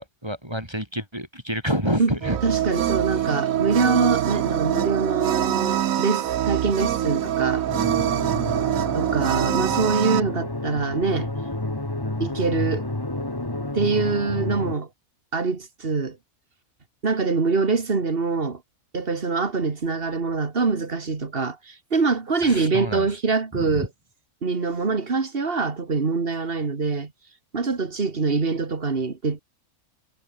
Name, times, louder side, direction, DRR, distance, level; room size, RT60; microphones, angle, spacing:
voice 1, 0.0-2.4 22.4-23.1 23.5-23.9, equal, 15° right, 6.6 m, -28 dB
sound 1, 2.2-10.2, right 11 dB, 70° right, 1.2 m, -24 dB
voice 2, 2.4-7.6 8.9-11.3 12.2-12.9 13.7-14.9 15.3-16.2 17.0-18.6 18.9-23.9 24.4-27.1 27.5-29.4, right 4 dB, 40° right, 2.2 m, -24 dB
sound 2, 7.7-14.8, left 1 dB, 15° left, 2.1 m, -30 dB
omnidirectional pair, 1.5 m